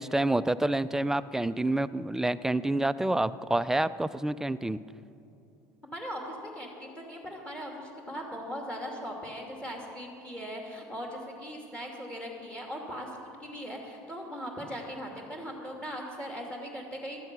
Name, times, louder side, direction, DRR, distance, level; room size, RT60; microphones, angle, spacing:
voice 1, 0.0-4.8, right 1 dB, 5° right, 13 dB, 0.4 m, -28 dB
voice 2, 5.8-17.2, equal, 10° left, 0 dB, 2.5 m, -39 dB
15.5 x 12.5 x 6.1 m, 2.7 s
supercardioid pair, 110°, 8 cm